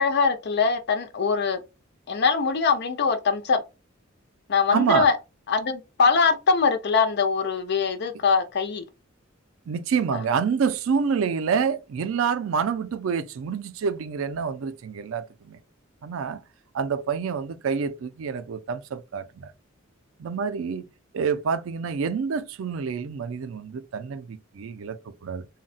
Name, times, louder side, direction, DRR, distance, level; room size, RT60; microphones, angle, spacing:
voice 1, 0.0-1.6 2.1-3.6 4.5-5.2 5.5-8.8 10.1-10.2, left 5 dB, 55° left, 0.5 m, -22 dB
voice 2, 4.7-5.1 9.7-15.6 16.0-16.4 16.7-19.5 20.2-20.9 21.1-25.5, right 6 dB, 75° right, 0.4 m, -27 dB
3.8 x 2.2 x 2.3 m
head